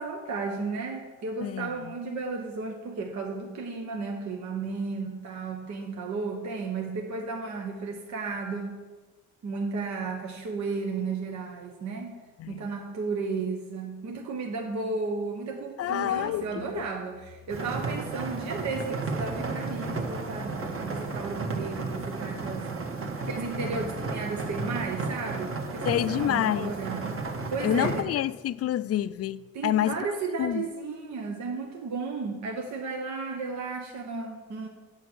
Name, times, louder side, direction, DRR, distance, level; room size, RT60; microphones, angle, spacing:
voice 1, 0.0-8.8 9.4-12.2 12.5-22.8 23.2-27.2 27.5-28.1 29.5-34.7, right 4 dB, 65° right, 1.3 m, -34 dB
voice 2, 1.4-1.9 12.4-12.7 15.8-16.8 25.9-26.8 27.6-30.1 30.4-30.6, left 12 dB, 55° left, 0.5 m, -28 dB
sound 1, 17.5-28.0, right 3 dB, 45° right, 1.7 m, -33 dB
9.3 x 8.6 x 6.3 m
cardioid pair, 90°, 30 cm